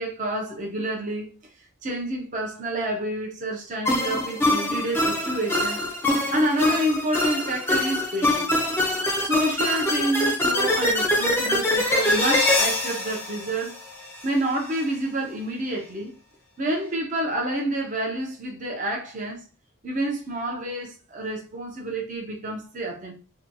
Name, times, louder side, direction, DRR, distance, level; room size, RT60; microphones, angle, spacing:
voice 1, 0.0-1.4 1.8-5.8 6.3-8.6 9.2-13.8 14.2-16.1 16.6-19.4 19.8-23.1, right 1 dB, 35° right, 0.5 m, -28 dB
sound 1, 3.9-14.2, left 1 dB, 10° left, 0.5 m, -24 dB
2.8 x 2.2 x 2.7 m
head